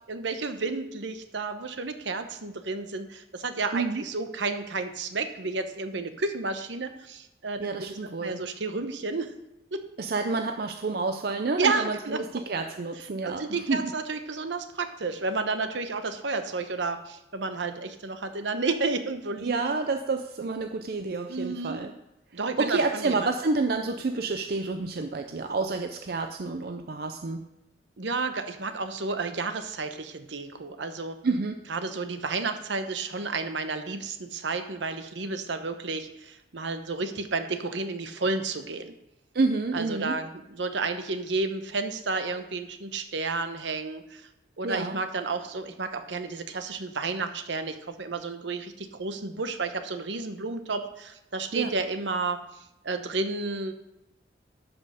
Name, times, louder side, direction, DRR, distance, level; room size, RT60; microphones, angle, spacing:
voice 1, 0.1-9.3 9.7-9.9 11.6-12.2 13.2-19.8 21.3-21.8 22.3-23.3 28.0-31.1 31.7-38.9 39.7-44.2 44.6-52.4 52.8-53.7, right 3 dB, 75° right, 8 dB, 0.9 m, -31 dB
voice 2, 3.7-4.0 7.6-8.4 10.0-13.9 19.4-21.9 22.6-27.4 31.2-31.6 39.3-40.2 44.6-45.0 51.5-51.7, right 3 dB, 55° right, 6 dB, 0.5 m, -29 dB
12.0 x 5.4 x 5.0 m, 0.88 s
head